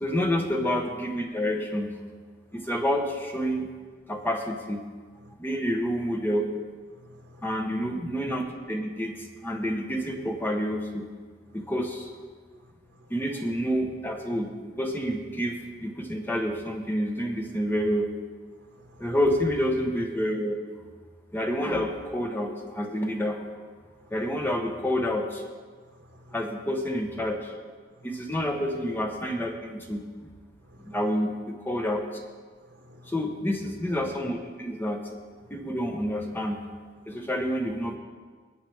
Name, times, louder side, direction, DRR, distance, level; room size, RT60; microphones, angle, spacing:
voice 1, 0.0-1.9 2.5-3.7 4.1-4.8 5.4-6.5 7.4-9.1 9.4-11.0 11.5-12.1 12.5-12.6 13.1-14.5 14.8-18.1 19.0-20.8 21.3-23.4 24.1-25.4 26.3-27.5 28.0-30.0 30.8-32.0 33.1-35.0 35.5-36.6 37.1-38.0, equal, 10° left, 1.0 m, -28 dB
voice 2, 7.0-7.4 18.8-19.1 26.0-26.4 30.7-31.0 32.7-33.1 37.1-37.2, left 1 dB, 70° right, 1.2 m, -53 dB
18.0 x 8.9 x 3.4 m
head